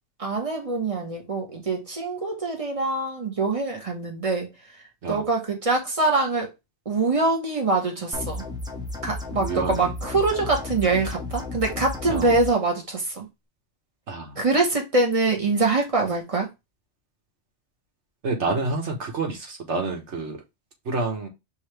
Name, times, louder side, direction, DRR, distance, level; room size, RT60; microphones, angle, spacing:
voice 1, 0.2-4.5 5.1-6.5 6.8-8.4 9.0-13.3 14.4-16.5, right 3 dB, 30° right, 1.5 m, -24 dB
sound 1, 8.1-12.5, left 2 dB, 5° right, 0.7 m, -33 dB
voice 2, 9.4-10.0 12.1-12.3 14.1-14.4 18.2-20.4 20.8-21.3, right 3 dB, 85° right, 1.6 m, -28 dB
5.5 x 2.8 x 3.3 m
omnidirectional pair, 1.2 m